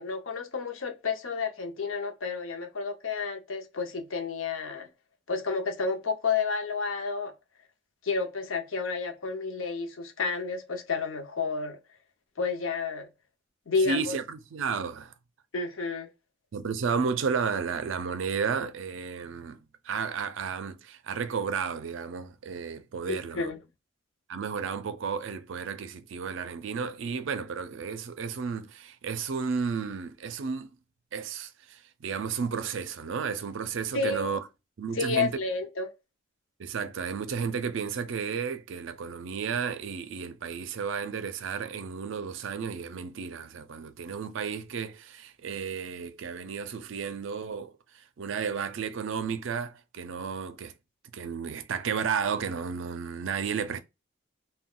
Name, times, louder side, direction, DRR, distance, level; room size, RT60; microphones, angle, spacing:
voice 1, 0.0-4.9 5.3-7.3 8.0-11.8 12.4-13.1 13.7-14.2 15.5-16.1 23.1-23.6 33.9-34.4 34.9-35.9, left 4 dB, 75° left, 0.6 m, -30 dB
voice 2, 13.8-15.1 16.5-19.6 19.8-23.5 24.3-30.7 31.1-34.4 34.8-35.3 36.6-47.7 48.2-50.7 51.1-53.8, right 6 dB, 65° right, 0.4 m, -33 dB
2.2 x 2.1 x 3.6 m
head